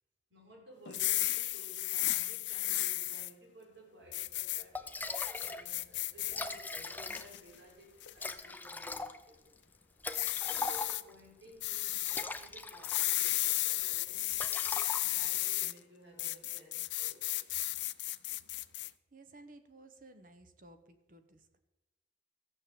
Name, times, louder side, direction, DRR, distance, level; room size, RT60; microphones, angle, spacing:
voice 1, 0.3-9.4 10.0-14.4 15.0-17.6, equal, 80° right, -1 dB, 4.7 m, -56 dB
sound 1, 0.9-3.3 4.1-4.6 5.1-6.4 6.8-7.4 8.0-8.3 10.1-11.0 11.6-12.2 12.8-15.7 16.2-18.9, left 18 dB, 75° left, 0.5 m, -34 dB
Liquid, 4.4-4.5 4.8-5.7 6.0-6.1 6.2-7.5 8.2-11.2 11.9-13.4 13.7-14.0 14.3-15.4, left 2 dB, 10° left, 0.5 m, -40 dB
voice 2, 18.8-21.6, right 2 dB, 45° right, 8 dB, 1.1 m, -56 dB
14.0 x 6.8 x 7.8 m, 1.0 s
head